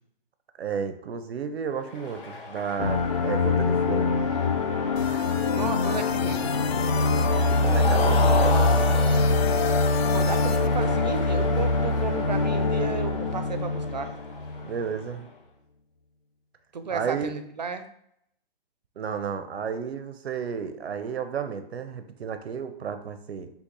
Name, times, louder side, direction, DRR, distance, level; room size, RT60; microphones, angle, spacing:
voice 1, 0.6-4.2 7.4-8.5 14.6-15.3 16.9-17.3 19.0-23.5, right 6 dB, 90° right, 9 dB, 0.7 m, -32 dB
Cheering, 1.8-15.2, left 3 dB, 60° left, 1.6 m, -36 dB
sound 1, 2.8-14.7, left 3 dB, 35° left, 0.6 m, -23 dB
sound 2, 5.0-10.7, left 8 dB, 90° left, 0.5 m, -35 dB
voice 2, 5.5-6.5 10.0-14.1 16.7-17.9, right 5 dB, 45° right, 9 dB, 0.4 m, -33 dB
5.7 x 2.1 x 3.9 m, 0.74 s
hypercardioid pair, 180°, 30 cm